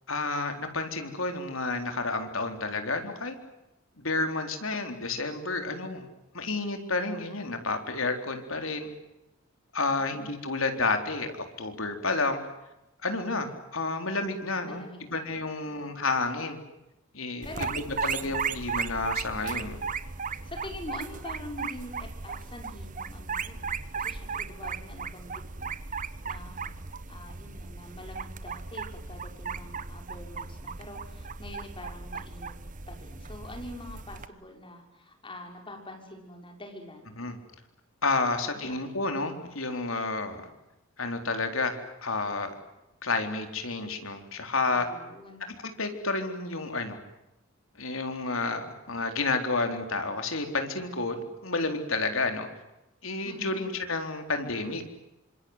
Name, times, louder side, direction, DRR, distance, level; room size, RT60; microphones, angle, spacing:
voice 1, 0.1-3.4 4.0-6.1 6.3-8.9 9.7-12.4 13.0-16.6 17.1-19.8 37.2-37.4 38.0-40.5 41.0-42.5 43.0-44.9 45.6-47.0 47.8-52.5 53.0-54.8, left 3 dB, 75° left, 6 dB, 4.1 m, -30 dB
voice 2, 14.6-15.3 15.6-15.9 17.4-17.7 18.0-18.3 20.2-32.5 32.9-37.1 38.5-38.9 44.7-45.4 53.2-53.8, left 1 dB, 25° left, 3 dB, 6.2 m, -45 dB
sound 1, 17.4-34.3, right 5 dB, 40° right, 1.1 m, -36 dB
28.0 x 26.0 x 8.1 m, 0.93 s
head